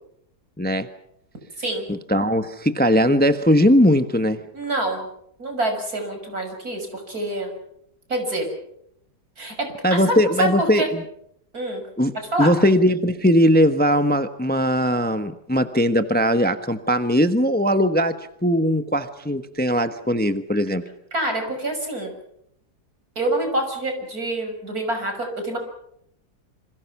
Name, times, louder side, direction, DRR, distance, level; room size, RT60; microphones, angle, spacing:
voice 1, 2.1-4.4 9.8-11.0 12.0-12.1 12.4-18.1 18.4-20.8, equal, 5° left, 9 dB, 1.1 m, -19 dB
voice 2, 4.5-5.1 5.4-7.5 8.1-8.5 9.4-10.9 11.5-11.9 12.1-12.5 21.1-22.1 23.1-25.6, right 1 dB, 65° right, 5 dB, 6.8 m, -26 dB
27.5 x 26.5 x 6.1 m, 0.74 s
omnidirectional pair, 1.7 m